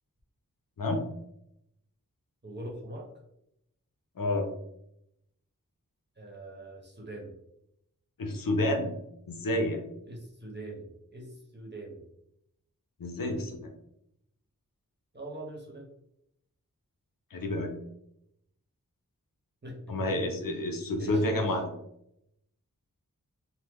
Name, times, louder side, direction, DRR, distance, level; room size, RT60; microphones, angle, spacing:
voice 1, 2.4-3.1 6.2-7.3 10.0-12.1 15.1-15.9 19.6-20.7 21.0-21.6, right 1 dB, 30° right, -1 dB, 1.0 m, -43 dB
voice 2, 4.2-4.5 8.2-8.9 9.3-9.8 13.0-13.7 17.3-17.7 19.9-21.7, left 1 dB, 80° left, 3 dB, 0.6 m, -29 dB
3.6 x 2.1 x 3.0 m, 0.80 s
wide cardioid pair, 65°, 33 cm